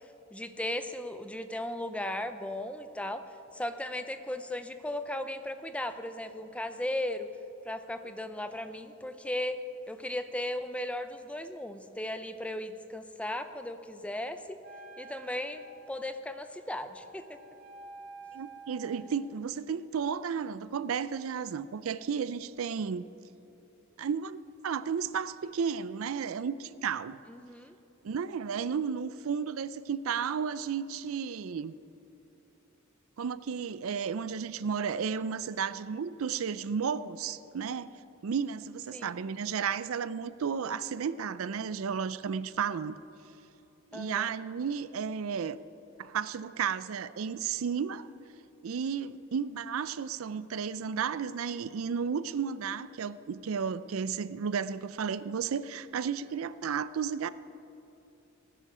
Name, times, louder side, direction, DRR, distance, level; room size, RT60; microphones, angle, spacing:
voice 1, 0.3-3.2 3.5-7.3 7.6-9.6 9.9-14.6 15.0-17.4 27.3-27.8 38.9-39.2 43.9-44.3, left 1 dB, 5° left, 9 dB, 0.5 m, -36 dB
Wind instrument woodwind instrument, 14.6-19.1, right 3 dB, 45° right, 1.6 m, -50 dB
voice 2, 18.3-23.0 24.0-27.2 28.0-31.7 33.2-37.9 38.2-43.0 43.9-45.6 46.0-48.1 48.6-57.3, right 6 dB, 75° right, 16 dB, 0.4 m, -33 dB
18.0 x 10.0 x 5.0 m, 3.0 s
head